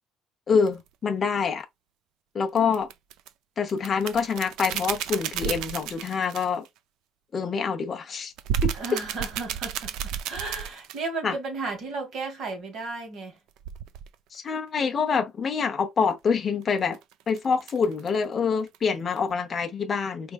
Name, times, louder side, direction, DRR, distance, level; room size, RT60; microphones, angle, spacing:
voice 1, 0.5-1.7 2.3-2.9 3.6-6.6 7.3-8.3 8.6-8.7 11.2-11.3 14.3-17.0 17.3-20.3, left 5 dB, 25° left, 0.7 m, -26 dB
sound 1, 0.7-0.8 2.6-3.3 3.7-6.7 8.4-11.1 13.6-14.1 16.6-18.2 18.7-18.8 19.1-19.3, right 9 dB, 85° right, 0.4 m, -32 dB
voice 2, 8.7-13.4, right 3 dB, 50° right, 1.6 m, -34 dB
4.5 x 3.3 x 2.3 m
cardioid pair, 175°, 0 cm